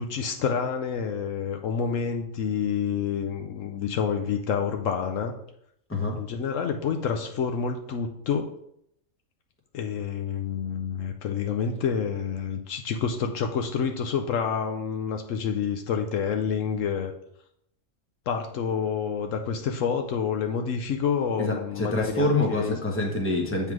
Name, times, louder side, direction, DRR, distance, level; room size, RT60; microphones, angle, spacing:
voice 1, 0.0-5.3 6.1-8.5 9.7-17.1 18.3-22.7, left 6 dB, 70° left, 5 dB, 0.9 m, -28 dB
voice 2, 21.4-23.7, left 2 dB, 10° left, 1 dB, 0.9 m, -26 dB
7.6 x 3.5 x 4.7 m, 0.74 s
omnidirectional pair, 1.5 m